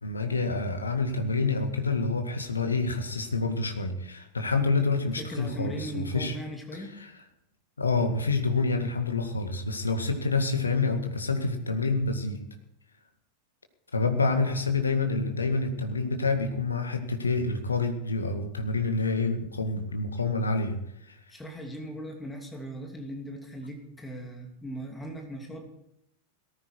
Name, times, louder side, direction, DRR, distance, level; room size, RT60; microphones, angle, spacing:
voice 1, 0.0-6.4 6.7-7.1 7.8-12.4 13.9-20.8 21.1-21.2, left 3 dB, 75° left, 5 dB, 2.0 m, -27 dB
voice 2, 5.2-7.0 21.3-25.7, equal, 10° left, 3 dB, 2.8 m, -38 dB
18.0 x 14.5 x 4.7 m, 0.80 s
figure-of-eight pair, 90°, 0 cm